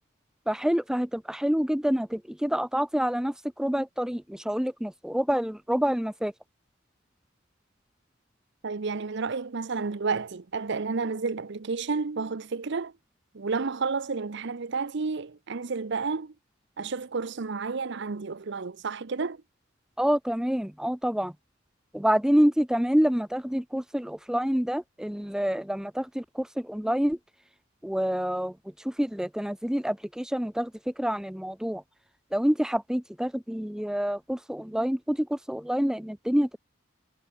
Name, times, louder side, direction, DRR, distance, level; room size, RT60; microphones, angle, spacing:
voice 1, 0.5-6.3 20.0-21.3 21.9-27.2 27.8-31.8 32.3-36.6, equal, 5° right, 0.5 m, -27 dB
voice 2, 8.6-12.9 13.3-16.3 16.8-19.4, right 4 dB, 60° right, 0.7 m, -31 dB
head